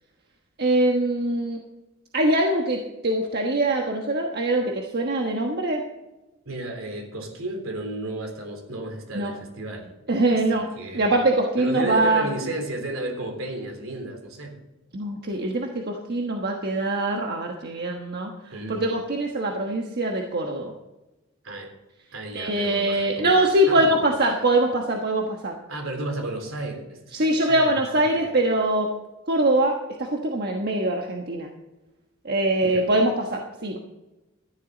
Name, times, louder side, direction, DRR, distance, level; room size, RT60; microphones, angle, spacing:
voice 1, 0.6-1.6 2.1-5.8 9.1-9.3 10.1-10.7 10.9-12.3 14.9-20.7 22.3-25.5 27.1-28.9 29.3-31.5 32.2-33.8, right 1 dB, 50° right, 2 dB, 1.3 m, -23 dB
voice 2, 6.4-9.9 10.5-11.1 11.6-14.6 18.5-18.8 21.4-21.7 22.1-24.2 25.7-27.7 28.1-28.3 32.6-32.9, right 1 dB, 70° right, 3 dB, 3.5 m, -33 dB
14.0 x 11.5 x 4.0 m, 1.0 s
head